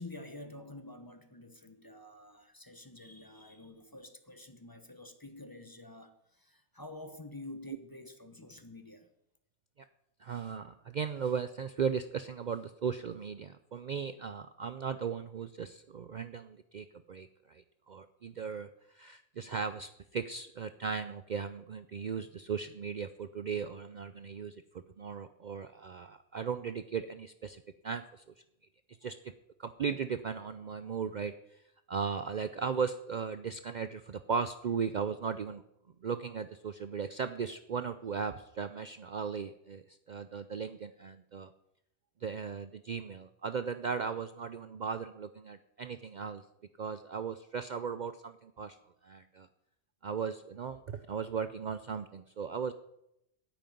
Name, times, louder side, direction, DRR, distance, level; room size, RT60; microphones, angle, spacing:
voice 1, 0.0-9.1, left 2 dB, 20° left, 8 dB, 1.0 m, -48 dB
voice 2, 10.2-18.7 18.9-24.6 25.0-28.2 29.0-29.2 29.6-31.3 31.9-35.6 36.0-41.5 42.2-46.4 46.8-48.8 49.0-49.5 50.0-52.7, right 6 dB, 50° right, 11 dB, 0.6 m, -37 dB
9.5 x 9.1 x 9.2 m, 0.81 s
omnidirectional pair, 1.2 m